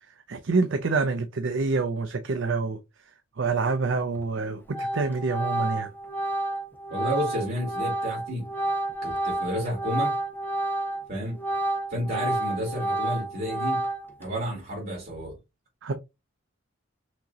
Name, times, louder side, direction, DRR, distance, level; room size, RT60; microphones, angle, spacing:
voice 1, 0.3-2.8 3.4-5.9 15.8-15.9, right 4 dB, 70° right, 0.6 m, -26 dB
Organ, 4.1-4.4 4.7-11.0 11.3-14.2, right 1 dB, 10° left, 0.9 m, -30 dB
voice 2, 6.9-8.5 9.0-10.2 11.1-11.4 11.9-13.9 14.2-15.4, equal, 55° right, 3.0 m, -31 dB
6.1 x 3.0 x 2.8 m
head